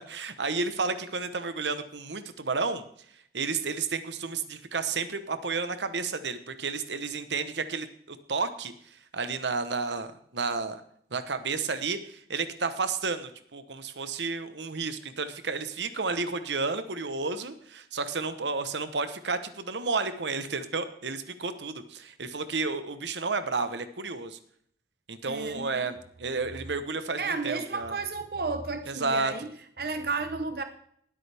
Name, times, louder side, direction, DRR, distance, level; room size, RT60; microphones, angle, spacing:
voice 1, 0.1-2.8 3.3-8.7 9.1-10.1 10.3-10.8 11.1-24.4 25.1-27.9 28.9-29.3, right 4 dB, 85° right, 11 dB, 1.0 m, -31 dB
voice 2, 25.3-25.9 27.2-30.6, right 4 dB, 55° right, 8 dB, 0.8 m, -33 dB
19.0 x 8.8 x 3.5 m, 0.64 s
head